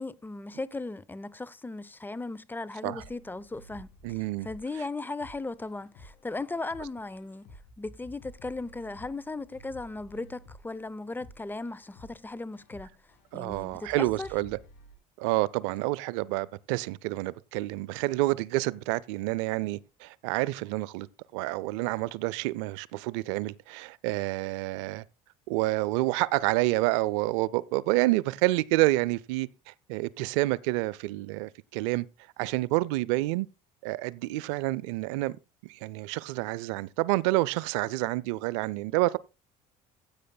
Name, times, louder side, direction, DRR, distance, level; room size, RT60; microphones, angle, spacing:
voice 1, 0.0-7.5 7.8-12.9 13.3-14.3, left 3 dB, 15° left, 0.5 m, -37 dB
sound 1, 3.0-15.0, equal, 85° left, 2.9 m, -53 dB
voice 2, 4.0-4.5 13.3-14.6 15.2-21.1 21.3-25.0 25.5-32.1 32.4-33.5 33.8-35.3 35.7-39.2, right 19 dB, 90° right, 0.4 m, -28 dB
15.5 x 8.6 x 2.2 m
supercardioid pair, 85°, 15 cm